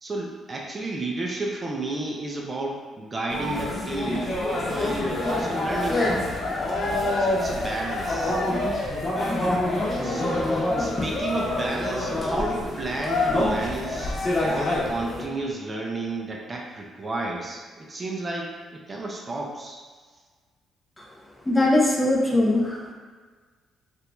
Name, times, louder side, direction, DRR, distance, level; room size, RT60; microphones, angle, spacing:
voice 1, 0.0-6.5 7.2-8.4 10.0-19.8, right 2 dB, 30° right, -1 dB, 0.5 m, -32 dB
sound 1, 3.3-15.2, left 1 dB, 30° left, 0.9 m, -27 dB
Cheering, 5.0-15.0, left 2 dB, 75° left, 0.6 m, -31 dB
voice 2, 21.5-22.9, left 1 dB, 15° left, -2 dB, 0.5 m, -21 dB
2.9 x 2.6 x 3.4 m, 1.5 s
cardioid pair, 90°, 0 cm